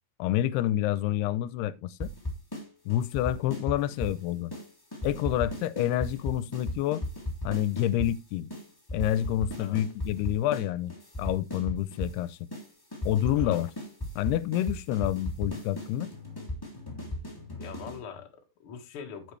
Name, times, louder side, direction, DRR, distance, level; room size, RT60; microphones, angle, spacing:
voice 1, 0.2-2.1 2.9-4.5 5.0-7.1 7.4-8.5 8.9-10.9 11.2-12.4 13.1-13.7 14.2-16.1, left 13 dB, 85° left, 2.6 m, -28 dB
sound 1, 2.0-2.6 2.9-4.2 4.5-4.7 4.9-8.1 8.5-8.6 8.9-10.6 10.9-12.2 12.5-12.6 12.9-18.0, left 1 dB, 5° left, 1.8 m, -35 dB
voice 2, 17.6-19.3, left 7 dB, 50° left, 1.7 m, -42 dB
9.1 x 8.2 x 3.2 m
omnidirectional pair, 4.6 m